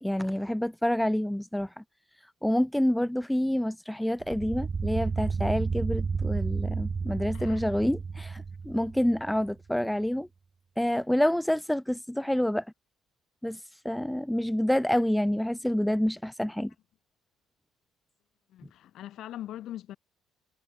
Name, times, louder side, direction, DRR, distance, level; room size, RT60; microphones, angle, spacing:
voice 1, 0.0-1.8 2.4-10.3 10.8-12.6 13.4-16.7, left 1 dB, ahead, 1.2 m, -28 dB
sound 1, 4.2-9.5, right 5 dB, 20° right, 3.7 m, -32 dB
voice 2, 7.3-7.7 18.5-20.0, left 12 dB, 55° left, 7.2 m, -41 dB
cardioid pair, 170°, 0 cm